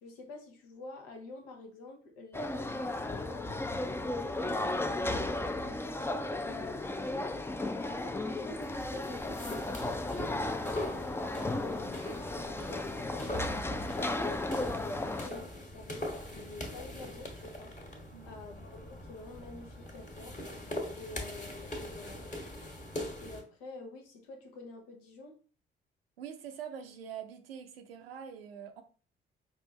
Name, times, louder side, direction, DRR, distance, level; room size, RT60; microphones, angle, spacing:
voice 1, 0.0-3.9 4.2-7.5 7.8-9.7 10.1-12.1 12.4-16.0 16.3-17.8 18.2-20.4 21.0-22.3 23.2-25.4, left 2 dB, 70° left, 0.9 m, -48 dB
sound 1, 2.3-15.3, left 2 dB, 10° left, 0.4 m, -35 dB
sound 2, 8.6-23.4, left 1 dB, 25° left, 1.4 m, -42 dB
voice 2, 26.2-28.8, right 8 dB, 80° right, 0.5 m, -44 dB
5.4 x 2.6 x 3.1 m
figure-of-eight pair, 40°, 29 cm